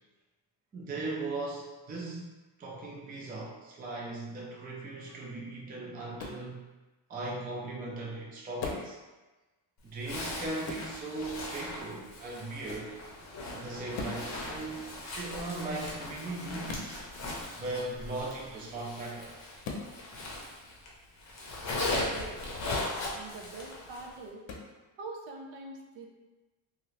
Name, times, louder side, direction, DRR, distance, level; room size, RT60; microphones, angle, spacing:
voice 1, 0.7-2.3 2.6-6.6 7.1-9.0 9.8-12.9 13.5-14.9 15.1-17.0 17.6-19.4, right 2 dB, 20° right, -3 dB, 0.4 m, -38 dB
sound 1, 6.2-6.4 8.6-8.9 10.6-10.9 12.7-12.9 13.9-14.2 16.7-16.9 19.6-19.9 22.6-22.9 24.5-24.7, left 4 dB, 70° left, 0.7 m, -38 dB
Zipper (clothing), 10.0-20.9 21.2-24.1, left 2 dB, 35° left, 0.6 m, -38 dB
voice 2, 22.0-22.4 23.1-24.5 25.0-26.1, right 3 dB, 75° right, 2 dB, 0.6 m, -44 dB
2.8 x 2.4 x 3.1 m, 1.2 s
cardioid pair, 170°, 46 cm